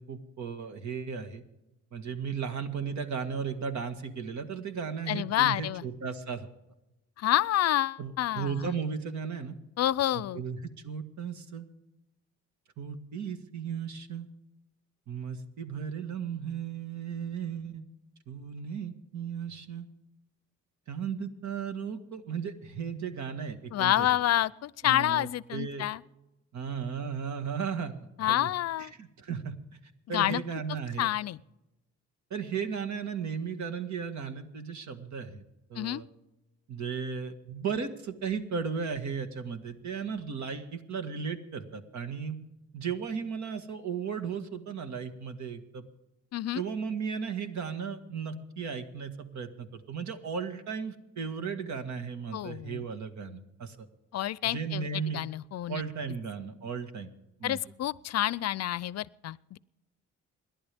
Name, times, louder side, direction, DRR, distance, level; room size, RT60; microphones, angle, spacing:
voice 1, 0.0-1.4 1.9-6.5 8.0-9.6 10.1-11.7 12.8-14.3 15.1-17.9 18.3-19.9 20.9-24.1 24.8-25.9 26.5-28.5 28.8-29.5 30.1-31.1 32.3-35.4 35.7-36.1 36.7-42.4 42.7-45.9 46.6-53.9 54.4-55.2 55.7-57.1 57.4-57.6, right 6 dB, 65° right, 8 dB, 1.9 m, -35 dB
voice 2, 5.1-5.8 7.2-8.7 9.8-10.4 23.7-26.0 28.2-28.9 30.1-30.4 31.0-31.4 35.8-36.0 46.3-46.6 52.3-52.9 54.1-55.8 57.4-59.6, left 13 dB, 55° left, 21 dB, 0.5 m, -28 dB
28.0 x 11.5 x 3.6 m, 0.94 s
cardioid pair, 90°, 30 cm